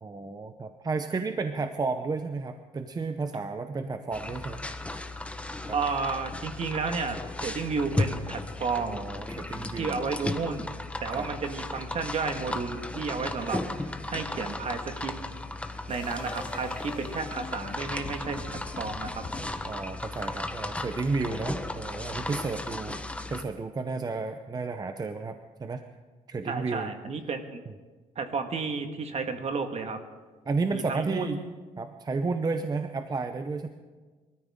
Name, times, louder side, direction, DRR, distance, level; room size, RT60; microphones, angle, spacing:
voice 1, 0.0-4.7 5.7-5.8 8.8-10.0 11.1-11.3 19.7-23.0 23.3-25.8 26.3-26.9 30.5-31.4 31.8-33.7, right 4 dB, 25° right, 8 dB, 0.8 m, -32 dB
sound 1, 4.1-23.4, left 2 dB, 10° left, 1.1 m, -35 dB
voice 2, 5.7-9.0 9.7-10.7 11.0-13.6 14.1-15.1 15.9-19.2 26.5-27.6 28.1-30.0 30.7-31.3, right 4 dB, 50° right, 6 dB, 1.7 m, -32 dB
sound 2, 15.9-19.4, left 2 dB, 35° left, 2.5 m, -42 dB
23.5 x 13.5 x 3.7 m, 1.3 s
cardioid pair, 95°, 14 cm